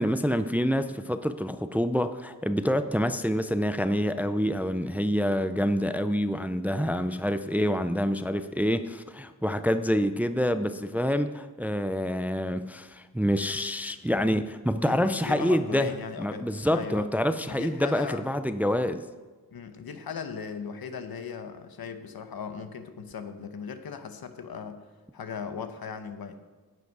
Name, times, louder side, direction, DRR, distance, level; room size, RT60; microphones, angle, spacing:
voice 1, 0.0-15.9 16.2-19.0, equal, 5° right, 11 dB, 0.4 m, -27 dB
voice 2, 14.9-17.1 17.5-18.3 19.5-24.8 25.1-26.4, left 6 dB, 75° left, 9 dB, 0.9 m, -38 dB
10.5 x 8.0 x 4.7 m, 1.3 s
wide cardioid pair, 80°, 36 cm